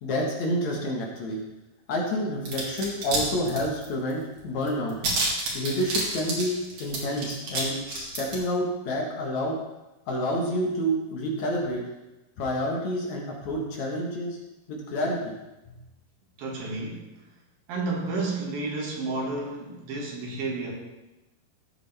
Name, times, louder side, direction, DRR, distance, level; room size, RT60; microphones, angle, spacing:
voice 1, 0.0-1.4 1.9-5.0 5.5-9.6 10.1-11.8 12.4-14.4 14.7-15.3 15.7-15.8, equal, 60° left, -1 dB, 2.5 m, -29 dB
Metal Rattle, 2.5-3.2 3.4-4.1 4.4-4.5 4.7-7.6 7.9-8.3, right 3 dB, 55° right, 3.5 m, -29 dB
voice 2, 16.4-17.3 17.7-20.7, right 3 dB, 75° right, -1 dB, 3.7 m, -31 dB
15.5 x 8.7 x 3.4 m, 1.0 s
omnidirectional pair, 4.2 m